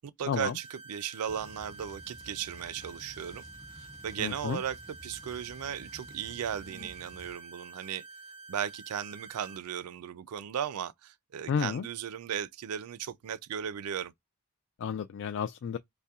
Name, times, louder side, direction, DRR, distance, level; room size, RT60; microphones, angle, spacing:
voice 1, 0.2-3.4 3.7-8.0 8.5-14.1, right 8 dB, 90° right, 0.4 m, -36 dB
sound 1, 0.6-9.6, right 3 dB, 25° right, 0.9 m, -49 dB
sound 2, 1.3-7.4, equal, 15° left, 0.8 m, -52 dB
voice 2, 4.2-4.6 11.5-11.9 14.8-15.8, left 6 dB, 55° left, 0.3 m, -31 dB
sound 3, 6.3-6.9, right 1 dB, 60° right, 0.9 m, -51 dB
5.4 x 2.1 x 2.3 m
head